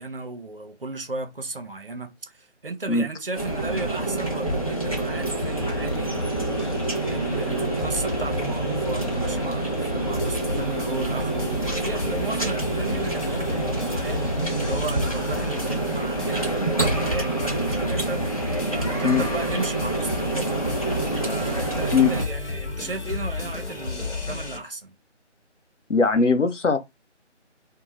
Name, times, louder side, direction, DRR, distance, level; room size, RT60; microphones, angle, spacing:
voice 1, 0.0-14.3 14.6-20.6 21.2-24.9, right 2 dB, 50° right, 0.6 m, -35 dB
sound 1, 3.3-22.2, right 2 dB, 30° left, 0.6 m, -27 dB
sound 2, 5.4-24.6, left 3 dB, 65° left, 1.1 m, -33 dB
voice 2, 25.9-26.8, left 4 dB, 85° left, 0.7 m, -20 dB
2.7 x 2.2 x 3.0 m
figure-of-eight pair, 165°, 36 cm